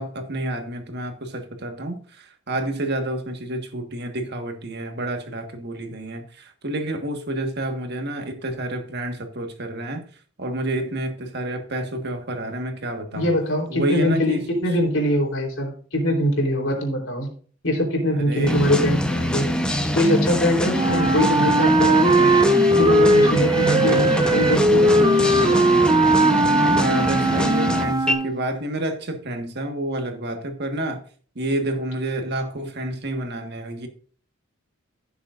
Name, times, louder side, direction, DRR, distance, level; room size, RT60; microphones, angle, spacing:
voice 1, 0.0-10.0 10.4-13.3 13.7-14.4 18.1-18.7 23.8-24.1 26.7-31.0 31.4-33.9, right 1 dB, 55° right, 1.6 m, -29 dB
voice 2, 13.1-17.3 17.6-19.5 19.9-22.3 22.8-25.8, left 1 dB, 65° left, 3.8 m, -23 dB
sound 1, 18.4-28.1, equal, 5° left, 1.0 m, -24 dB
Wind instrument woodwind instrument, 20.7-28.4, right 1 dB, 20° right, 0.5 m, -19 dB
15.5 x 7.0 x 2.6 m
head